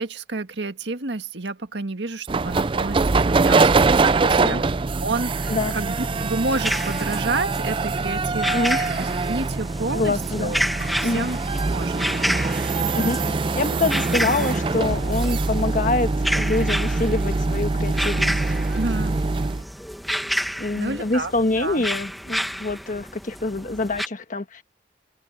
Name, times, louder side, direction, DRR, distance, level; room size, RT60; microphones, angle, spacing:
voice 1, 0.0-10.6 11.0-11.4 11.7-12.0 18.7-19.2 20.7-21.3 21.6-21.8, right 3 dB, 70° right, 1.7 m, -30 dB
sound 1, 2.3-19.6, right 3 dB, 30° right, 0.4 m, -23 dB
voice 2, 4.2-4.6 5.5-5.7 8.5-8.8 9.9-10.5 11.0-11.3 12.9-13.2 13.5-18.4 20.6-24.6, left 2 dB, 45° left, 1.5 m, -25 dB
sound 2, 5.4-24.1, equal, ahead, 1.3 m, -31 dB
open air
head